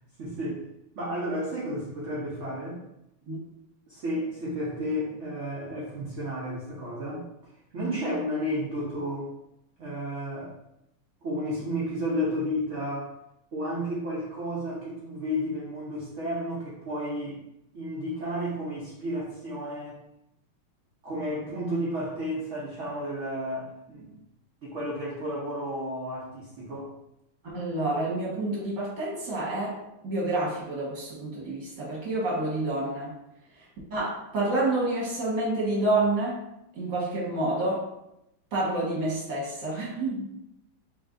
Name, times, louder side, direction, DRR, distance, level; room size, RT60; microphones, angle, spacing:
voice 1, 0.2-0.6 1.0-2.8 3.9-7.3 7.7-9.3 9.8-10.5 11.2-13.1 13.5-17.4 17.7-20.0 21.0-24.2 24.6-26.9, equal, 85° right, -6 dB, 0.6 m, -32 dB
voice 2, 27.4-33.1 33.9-36.4 36.8-37.9 38.5-40.2, right 2 dB, 45° right, -5 dB, 1.4 m, -28 dB
3.2 x 2.6 x 3.6 m, 0.83 s
omnidirectional pair, 2.3 m